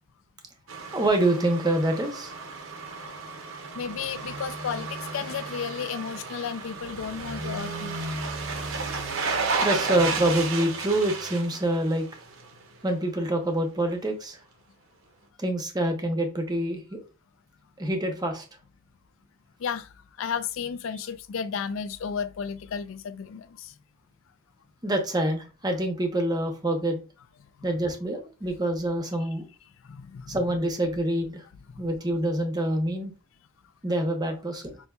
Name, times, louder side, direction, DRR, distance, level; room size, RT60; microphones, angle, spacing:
sound 1, 0.7-12.6 12.9-13.0, right 4 dB, 65° right, 0.7 m, -33 dB
voice 1, 0.9-2.3 9.6-12.1 12.8-14.4 15.4-17.0 17.8-18.4 24.8-27.0 27.6-29.4 30.3-31.4 31.8-33.1 33.8-34.8, right 1 dB, 20° right, 0.7 m, -26 dB
voice 2, 3.7-8.0 19.6-23.7 29.8-30.4 31.7-31.9, left 7 dB, 60° left, 0.4 m, -33 dB
5.4 x 2.7 x 2.3 m
head